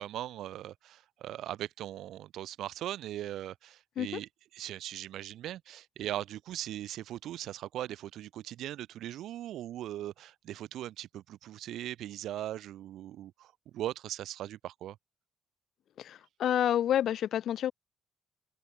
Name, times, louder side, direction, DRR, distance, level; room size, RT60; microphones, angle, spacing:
voice 1, 0.0-4.3 4.5-15.0, right 12 dB, 80° right, 1.7 m, -39 dB
voice 2, 16.0-17.7, left 10 dB, 70° left, 1.3 m, -29 dB
cardioid pair, 90°, 0 cm